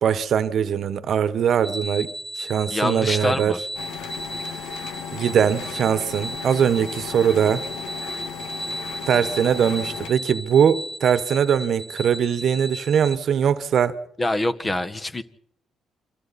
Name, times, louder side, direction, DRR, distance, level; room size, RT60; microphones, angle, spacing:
voice 1, 0.0-2.1 2.4-3.5 5.1-7.6 9.1-14.0, right 8 dB, 65° right, 1.2 m, -21 dB
sound 1, 1.6-13.2, equal, 15° right, 0.8 m, -35 dB
voice 2, 2.7-3.6 14.2-15.2, left 1 dB, 25° left, 1.4 m, -25 dB
sound 2, 3.7-10.1, left 7 dB, 90° left, 1.7 m, -35 dB
29.5 x 24.5 x 4.2 m
cardioid pair, 90°, 0 cm